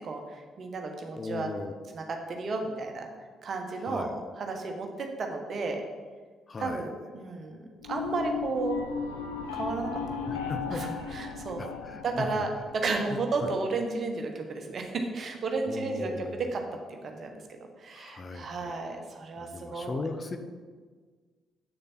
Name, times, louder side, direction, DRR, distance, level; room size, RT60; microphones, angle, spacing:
voice 1, 0.0-1.5 1.9-3.1 3.4-5.8 6.6-8.8 9.5-10.0 10.3-11.7 12.0-16.6 17.0-17.3 17.8-20.0, right 3 dB, 45° right, 3 dB, 1.2 m, -33 dB
voice 2, 1.2-1.7 3.8-4.3 6.5-6.9 10.3-10.8 11.6-12.4 13.1-13.5 15.6-16.5 17.9-18.7 19.3-20.4, left 3 dB, 35° left, 7 dB, 0.7 m, -37 dB
sound 1, 7.8-12.9, left 5 dB, 75° left, 0.7 m, -35 dB
8.2 x 6.6 x 4.4 m, 1.5 s
figure-of-eight pair, 45°, 0 cm